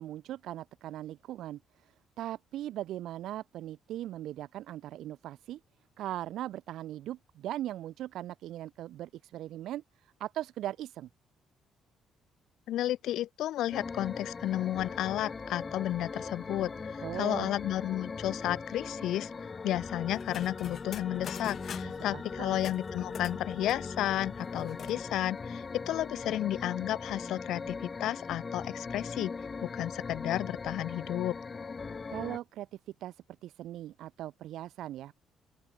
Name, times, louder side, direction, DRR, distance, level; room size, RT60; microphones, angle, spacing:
voice 1, 0.0-5.6 6.0-11.1 17.0-17.5 21.8-22.6 32.1-32.7 33.0-35.1, right 13 dB, 70° right, 1.5 m, -39 dB
voice 2, 12.7-29.3 29.6-31.4, left 13 dB, 70° left, 3.1 m, -32 dB
sound 1, 13.7-32.4, left 4 dB, 25° left, 2.5 m, -40 dB
sound 2, 20.1-22.1 22.6-25.0 25.4-25.5 25.7-26.3, left 8 dB, 40° left, 2.4 m, -46 dB
open air
cardioid pair, 165°, 0 cm